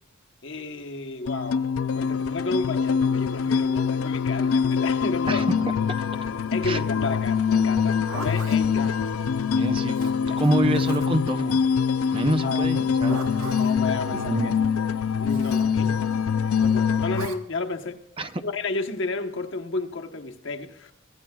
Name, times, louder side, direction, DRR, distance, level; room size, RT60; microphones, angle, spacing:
voice 1, 0.4-1.6 1.9-5.5 6.5-9.1 9.6-9.7 10.0-10.4 12.4-12.7 13.6-14.5 15.2-16.2 16.5-18.0 18.4-20.9, left 3 dB, 60° left, 1.1 m, -32 dB
sound 1, 1.3-17.3, left 6 dB, 80° left, 0.5 m, -24 dB
Zipper (clothing), 7.8-8.6 9.9-11.3 12.7-13.8 15.3-15.7 17.1-17.4, right 3 dB, 80° right, 1.5 m, -38 dB
voice 2, 9.5-11.6 12.1-13.2 14.1-14.6 18.2-18.3, right 1 dB, 25° right, 0.6 m, -26 dB
24.5 x 15.5 x 2.3 m
head